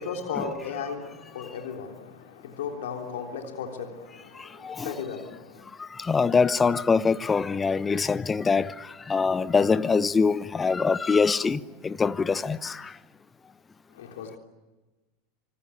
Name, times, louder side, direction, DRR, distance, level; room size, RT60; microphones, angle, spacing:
voice 1, 0.0-5.6 13.9-14.4, left 6 dB, 70° left, 3.4 m, -36 dB
voice 2, 6.1-8.7 9.1-12.8, left 5 dB, 20° left, 1.0 m, -23 dB
27.0 x 25.5 x 8.5 m
hypercardioid pair, 90°, 0 cm